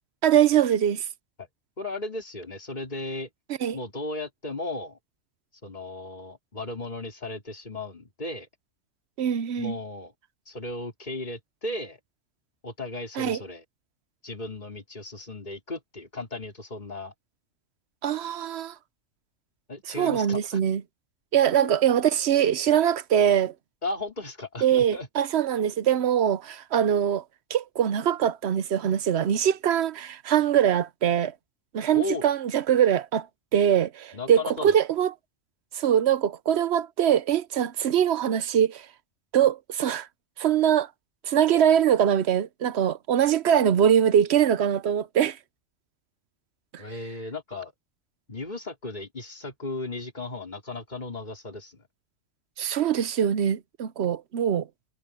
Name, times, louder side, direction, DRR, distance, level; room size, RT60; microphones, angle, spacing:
voice 1, 0.2-1.0 3.6-3.8 9.2-9.8 13.2-13.4 18.0-18.7 20.0-20.8 21.3-23.5 24.6-27.2 27.5-31.3 31.7-33.3 33.5-35.1 35.7-38.9 39.3-40.1 40.4-40.9 41.2-45.4 46.7-46.8 52.6-54.7, right 9 dB, 60° right, 0.9 m, -23 dB
voice 2, 1.8-3.3 3.7-5.0 5.6-8.5 9.6-10.1 10.5-12.0 12.6-13.6 14.2-17.1 19.7-20.6 21.6-21.7 23.8-25.1 31.9-32.2 34.1-34.8 46.8-47.7 48.3-51.8, left 2 dB, 35° left, 3.9 m, -35 dB
omnidirectional pair, 1.3 m